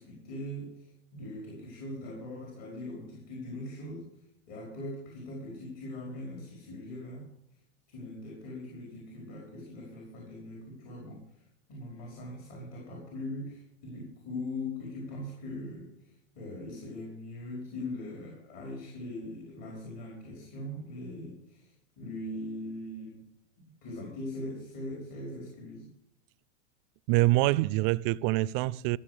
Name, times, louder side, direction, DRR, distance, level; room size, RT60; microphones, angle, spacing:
voice 1, 0.0-4.0 4.5-7.3 7.9-23.3 23.8-25.9, left 1 dB, 60° left, 5.1 m, -41 dB
voice 2, 27.1-29.0, right 18 dB, 45° right, 0.4 m, -25 dB
15.0 x 7.0 x 8.3 m
supercardioid pair, 125°, 35 cm